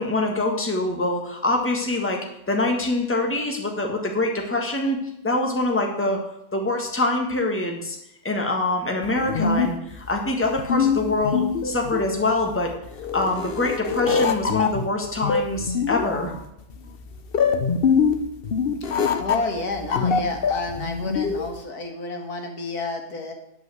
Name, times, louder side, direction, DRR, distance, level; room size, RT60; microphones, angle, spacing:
voice 1, 0.0-6.2 6.5-8.0 8.2-12.7 13.1-16.3, left 2 dB, 10° left, 1 dB, 1.6 m, -25 dB
sound 1, 9.0-21.6, left 6 dB, 45° left, 0.9 m, -24 dB
voice 2, 19.2-23.3, left 2 dB, 80° left, 3 dB, 2.2 m, -30 dB
10.5 x 5.5 x 7.8 m, 0.79 s
omnidirectional pair, 1.6 m